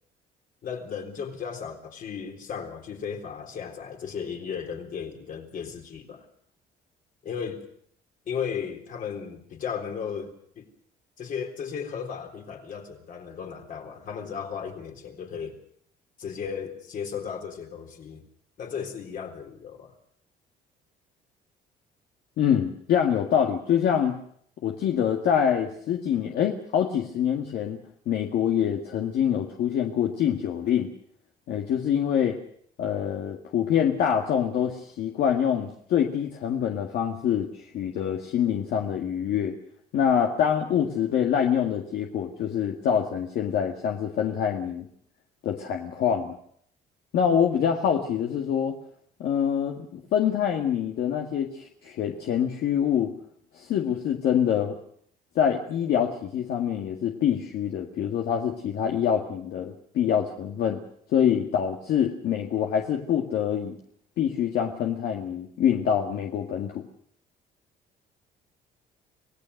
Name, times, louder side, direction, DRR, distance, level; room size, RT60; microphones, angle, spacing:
voice 1, 0.6-6.3 7.2-7.6 8.3-10.7 11.2-15.6 16.2-18.2 18.6-19.9, left 7 dB, 55° left, 4 dB, 3.8 m, -35 dB
voice 2, 22.4-24.2 24.6-27.8 28.1-30.9 31.5-32.4 32.8-39.5 39.9-44.9 45.4-46.4 47.1-48.8 49.2-53.1 53.5-54.8 55.4-60.8 61.1-63.8 64.2-66.8, left 8 dB, 70° left, 2 dB, 2.0 m, -25 dB
25.5 x 17.5 x 6.6 m, 0.65 s
cardioid pair, 110°, 17 cm